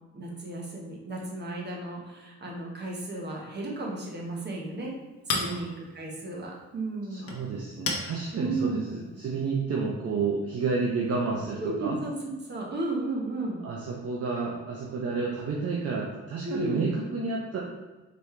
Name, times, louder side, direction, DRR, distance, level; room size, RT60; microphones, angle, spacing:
voice 1, 0.1-4.9 5.3-7.3 8.3-8.8 11.6-13.6 16.4-16.8, right 2 dB, 35° right, -2 dB, 1.3 m, -34 dB
Chink clink, 4.0-9.5, left 3 dB, 50° left, 1.0 m, -38 dB
voice 2, 7.1-12.0 13.6-17.6, right 4 dB, 50° right, -3 dB, 0.8 m, -30 dB
4.3 x 3.1 x 3.3 m, 1.2 s
cardioid pair, 90°, 30 cm